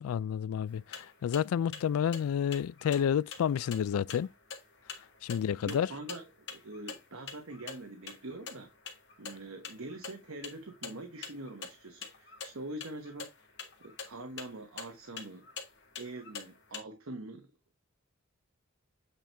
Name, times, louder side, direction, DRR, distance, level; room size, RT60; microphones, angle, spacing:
voice 1, 0.0-4.3 5.2-5.9, left 8 dB, 85° left, 0.3 m, -30 dB
sound 1, 0.7-16.8, left 6 dB, 55° left, 1.9 m, -47 dB
voice 2, 5.3-8.7 9.2-13.3 13.8-15.4 16.0-17.5, right 2 dB, 75° right, 1.1 m, -44 dB
8.4 x 4.4 x 3.4 m
head